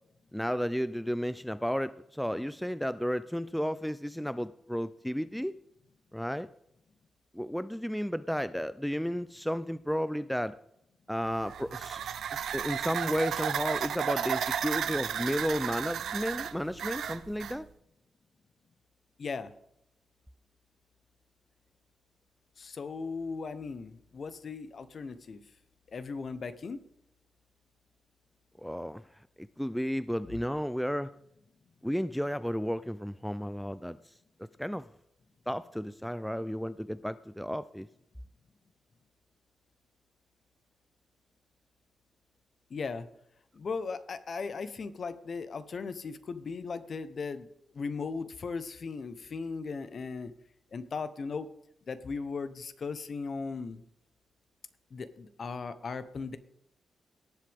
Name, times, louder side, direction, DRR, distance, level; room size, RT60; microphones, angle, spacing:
voice 1, 0.3-5.5 6.1-6.5 7.3-10.6 11.1-17.7 28.6-29.0 29.4-31.1 31.8-34.0 34.6-34.8 35.5-37.9, equal, ahead, 14 dB, 0.3 m, -33 dB
sound 1, 11.3-17.6, right 8 dB, 90° right, 0.7 m, -33 dB
voice 2, 19.2-19.5 22.6-25.4 25.9-26.8 42.7-43.1 43.5-47.5 47.7-50.3 50.7-51.5 51.9-53.8 54.9-56.4, left 4 dB, 45° left, 12 dB, 1.0 m, -37 dB
18.0 x 7.8 x 3.6 m, 0.76 s
wide cardioid pair, 140°, 0 cm